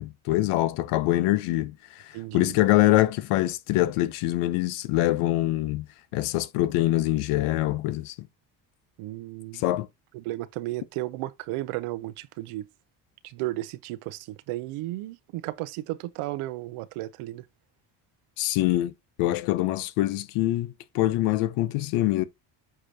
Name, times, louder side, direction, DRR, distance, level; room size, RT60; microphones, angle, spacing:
voice 1, 0.0-8.3 9.5-9.9 18.4-18.9 19.2-22.2, left 16 dB, 85° left, 0.9 m, -24 dB
voice 2, 2.1-2.5 9.0-9.6 10.1-12.7 13.2-17.4, right 17 dB, 85° right, 0.8 m, -34 dB
8.3 x 4.9 x 2.8 m
cardioid pair, 90°, 49 cm